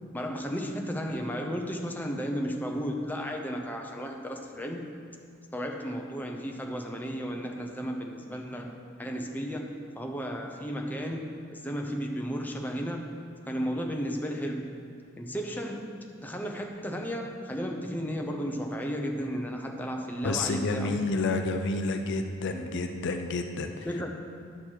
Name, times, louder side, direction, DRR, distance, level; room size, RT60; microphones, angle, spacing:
voice 1, 0.1-4.9 5.5-13.2 13.5-14.6 15.2-21.0 23.8-24.1, equal, 10° left, 1 dB, 0.7 m, -34 dB
voice 2, 20.2-23.9, left 3 dB, 55° left, 6 dB, 0.5 m, -29 dB
11.5 x 6.3 x 4.5 m, 2.4 s
head